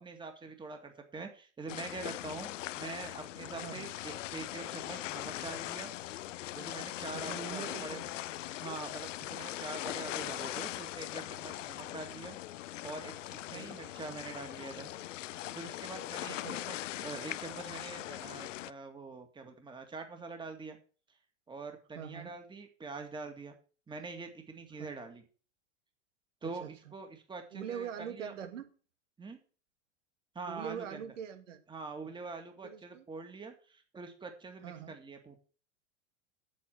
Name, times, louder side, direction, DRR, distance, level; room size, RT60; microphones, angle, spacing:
voice 1, 0.0-2.5 2.8-5.9 6.5-8.0 8.6-12.4 12.8-14.9 15.5-20.8 21.5-23.6 23.9-25.2 26.4-28.3 29.2-29.4 30.3-31.0 31.7-35.4, right 4 dB, 15° right, 6 dB, 2.2 m, -44 dB
sound 1, 1.7-18.7, left 15 dB, 80° left, 0.6 m, -41 dB
voice 2, 3.6-3.9 7.1-8.0 11.5-11.6 13.5-13.9 16.3-16.7 21.9-22.4 24.8-24.9 26.6-26.9 27.5-28.7 30.5-31.6 32.6-33.1 34.6-34.9, right 8 dB, 80° right, 7 dB, 2.5 m, -43 dB
8.6 x 8.5 x 6.2 m, 0.38 s
hypercardioid pair, 125°, 37 cm